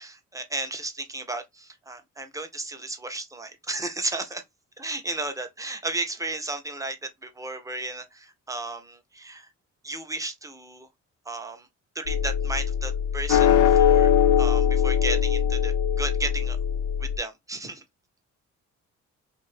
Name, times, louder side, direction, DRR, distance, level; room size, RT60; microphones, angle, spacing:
voice 1, 0.0-4.4 4.8-9.5 9.8-10.9 11.3-11.7 11.9-14.1 14.4-16.6 17.0-17.8, right 2 dB, 10° right, 0.7 m, -34 dB
sound 1, 12.1-17.2, left 8 dB, 75° left, 0.6 m, -21 dB
2.6 x 2.5 x 3.2 m
cardioid pair, 90°, 30 cm